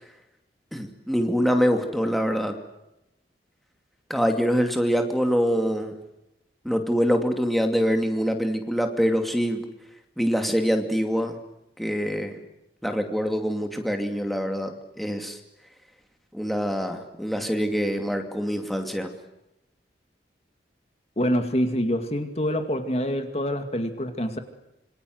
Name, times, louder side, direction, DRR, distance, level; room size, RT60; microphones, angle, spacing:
voice 1, 0.7-2.6 4.1-6.0 6.6-9.6 10.2-11.4 11.8-12.4 12.8-15.4 16.3-19.1, equal, ahead, 4 dB, 2.6 m, -25 dB
voice 2, 21.2-24.4, equal, 35° left, 7 dB, 2.2 m, -26 dB
27.5 x 25.0 x 8.0 m, 0.87 s
head